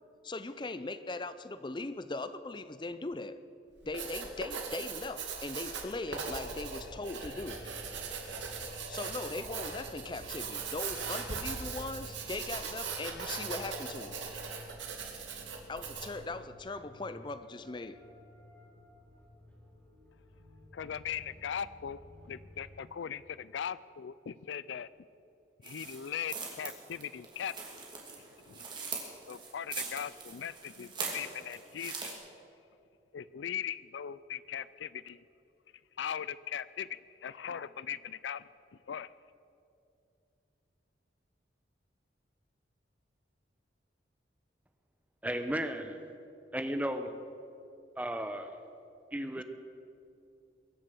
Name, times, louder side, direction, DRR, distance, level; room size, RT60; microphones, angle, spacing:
voice 1, 0.2-3.4 3.8-7.6 8.9-14.2 15.7-18.0 49.3-49.4, left 2 dB, 25° left, 0.5 m, -40 dB
Writing, 3.8-16.2, right 5 dB, 85° right, 2.2 m, -40 dB
sound 1, 6.2-22.8, left 1 dB, 10° left, 4.0 m, -54 dB
voice 2, 20.7-24.9 25.6-27.5 28.1-28.6 29.3-32.2 33.1-35.2 36.0-38.5 38.9-39.1, left 8 dB, 80° left, 0.4 m, -39 dB
sound 2, 25.6-32.1, right 5 dB, 25° right, 2.6 m, -42 dB
voice 3, 45.2-46.0 46.5-47.1 48.0-48.5 49.1-49.4, right 1 dB, 10° right, 0.8 m, -34 dB
22.5 x 8.0 x 7.7 m
head